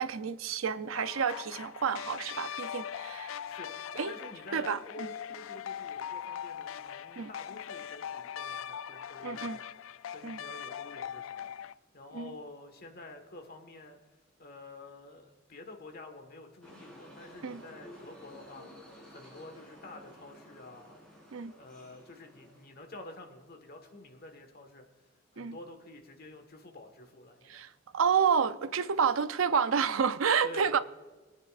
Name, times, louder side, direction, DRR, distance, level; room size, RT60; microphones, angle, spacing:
voice 1, 0.0-3.3 4.0-4.1 4.5-4.8 7.2-7.3 9.2-9.6 10.2-10.4 12.1-12.3 17.4-17.6 21.3-21.5 25.4-25.6 27.5-30.8, right 6 dB, 90° right, 0.6 m, -29 dB
sound 1, 0.9-11.7, left 9 dB, 85° left, 0.4 m, -41 dB
voice 2, 3.4-14.0 14.4-21.0 21.6-27.6 30.4-30.8, left 2 dB, 50° left, 1.5 m, -49 dB
sound 2, 16.6-22.7, equal, 5° left, 4.5 m, -52 dB
22.5 x 9.4 x 2.5 m
head